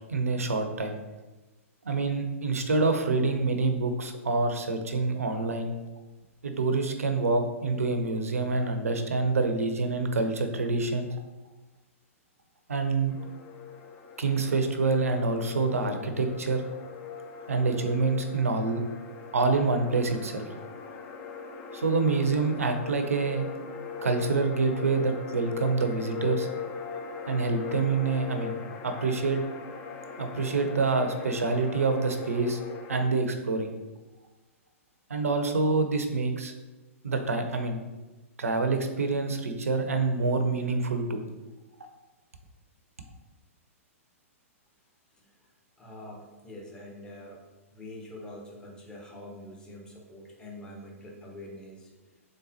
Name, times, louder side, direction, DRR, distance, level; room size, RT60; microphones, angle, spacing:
voice 1, 0.1-0.9 1.8-5.7 6.4-11.1 12.7-13.1 14.2-16.6 17.5-18.8 19.3-20.5 21.7-23.5 24.0-26.5 27.3-28.6 28.8-29.4 30.2-32.6 32.9-33.7 35.1-36.5 37.0-37.8 38.4-41.2, right 3 dB, 75° right, 7 dB, 0.5 m, -26 dB
sound 1, 13.1-33.0, left 6 dB, 25° left, 0.4 m, -40 dB
voice 2, 45.8-47.4 47.7-51.9, left 1 dB, 10° left, -1 dB, 0.8 m, -45 dB
3.9 x 3.5 x 2.7 m, 1.1 s
figure-of-eight pair, 110°, 8 cm